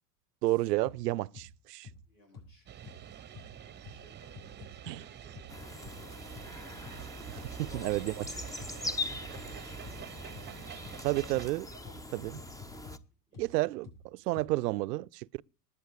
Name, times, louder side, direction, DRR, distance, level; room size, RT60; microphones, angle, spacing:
voice 1, 0.4-1.9 4.9-5.1 7.3-8.1 11.0-11.7 12.1-12.4 13.4-15.4, right 19 dB, 75° right, 0.6 m, -31 dB
sound 1, 0.8-1.0 1.3-1.5 1.8-2.0 2.3-2.5 2.8-3.0 3.3-3.5 3.8-4.0 4.3-5.0 5.3-5.5 5.8-6.0 6.3-6.5 6.8-7.0 7.3-7.5 7.8-9.0 9.3-9.5 9.8-10.0 10.3-10.5 10.8-11.0 11.3-11.5 11.8-12.0 12.3-13.0 13.3-13.5 13.8-14.0 14.3-14.5, left 5 dB, 50° left, 7.1 m, -48 dB
voice 2, 2.1-2.7 3.5-6.1 7.5-10.7 11.1-11.3 11.7-12.3 13.3-13.5, left 2 dB, 90° left, 7.7 m, -57 dB
sound 2, 2.7-11.5, right 10 dB, 20° right, 0.8 m, -47 dB
sound 3, 5.5-13.0, left 2 dB, 5° left, 0.6 m, -42 dB
19.5 x 7.6 x 4.8 m
hypercardioid pair, 85°, 49 cm